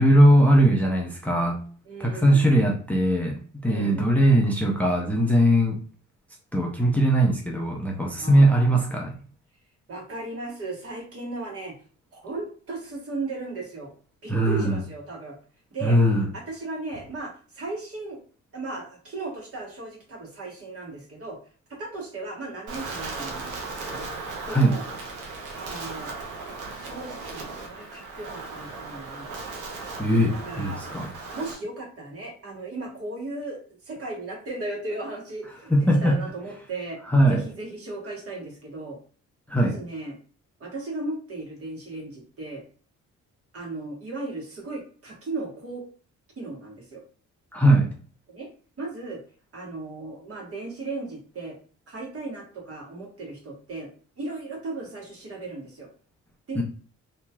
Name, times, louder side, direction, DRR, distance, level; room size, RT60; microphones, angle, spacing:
voice 1, 0.0-1.6 2.0-5.8 6.5-9.2 14.3-14.8 15.8-16.3 24.5-24.7 30.0-31.1 35.7-36.2 37.1-37.4 39.5-39.7 47.5-47.9 56.6-56.7, right 1 dB, 5° left, 0 dB, 0.6 m, -20 dB
voice 2, 1.9-2.5 3.6-4.1 8.2-8.9 9.9-11.8 12.1-13.9 14.2-15.4 15.7-16.0 16.3-18.2 18.5-21.4 21.7-24.1 24.5-24.8 25.6-26.1 26.8-29.6 30.3-37.0 37.3-39.0 39.6-40.2 40.6-42.6 43.5-45.8 46.4-47.0 48.3-48.5 48.8-49.2 49.5-51.6 51.9-53.9 54.2-55.9 56.5-56.6, right 2 dB, 50° right, -2 dB, 1.5 m, -36 dB
Wind, 22.7-31.5, right 3 dB, 85° right, 0.9 m, -37 dB
2.9 x 2.9 x 2.2 m, 0.42 s
cardioid pair, 90°, 30 cm